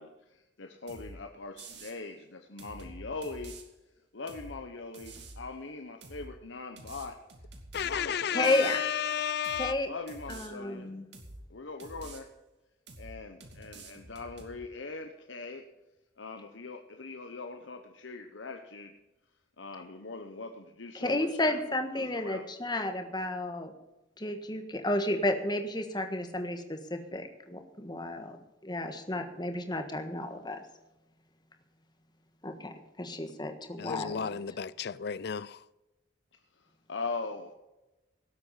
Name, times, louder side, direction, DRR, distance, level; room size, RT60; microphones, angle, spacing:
voice 1, 0.0-3.6 4.1-7.2 7.8-8.8 9.8-10.9 11.5-12.3 13.0-15.7 16.2-19.0 19.6-21.6 21.9-22.5 36.5-37.5, left 3 dB, 75° left, 1.0 m, -41 dB
sound 1, 0.9-1.1 1.6-2.0 2.6-3.6 4.3-4.5 4.9-5.4 6.0-6.3 6.8-8.0 8.4-8.8 9.4-9.7 10.1-10.5 11.1-11.4 11.8-12.2 12.9-13.1 13.4-14.6, right 2 dB, 60° right, 2.6 m, -47 dB
voice 2, 7.7-9.7 33.8-35.6, left 8 dB, 55° left, 0.4 m, -33 dB
voice 3, 8.3-8.8 9.6-9.9 10.3-11.0 20.9-23.7 24.2-28.4 28.6-30.6 32.4-32.7 33.0-34.4, left 1 dB, 20° left, 1.5 m, -32 dB
18.0 x 8.2 x 5.7 m
head